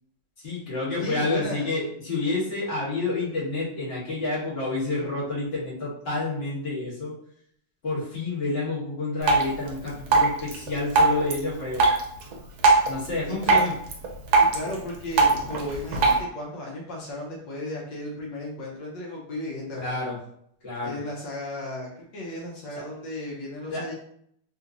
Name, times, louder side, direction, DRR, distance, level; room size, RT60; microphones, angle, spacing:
voice 1, 0.4-7.1 7.8-11.8 12.9-13.7 19.8-20.2 20.6-21.0 23.7-23.8, left 2 dB, 35° left, -8 dB, 1.5 m, -29 dB
voice 2, 1.0-1.7 13.4-13.7 14.4-20.0 20.8-23.9, left 1 dB, 80° left, -3 dB, 1.4 m, -34 dB
Drip, 9.2-16.2, right 3 dB, 65° right, 1.1 m, -23 dB
3.5 x 2.9 x 2.5 m, 0.68 s
omnidirectional pair, 1.9 m